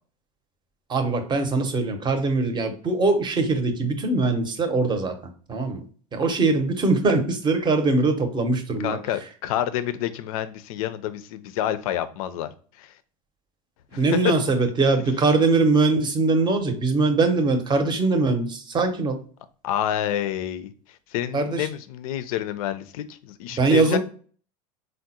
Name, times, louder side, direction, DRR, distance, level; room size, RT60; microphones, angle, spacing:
voice 1, 0.9-5.2 5.5-5.8 6.1-9.0 13.9-19.2 21.3-21.7 23.6-24.0, right 3 dB, 25° right, 6 dB, 0.6 m, -22 dB
voice 2, 8.8-12.5 12.8-12.9 13.9-14.3 19.6-20.7 21.1-24.0, left 11 dB, 70° left, 12 dB, 0.4 m, -28 dB
3.7 x 2.0 x 2.7 m, 0.42 s
hypercardioid pair, 95°, 19 cm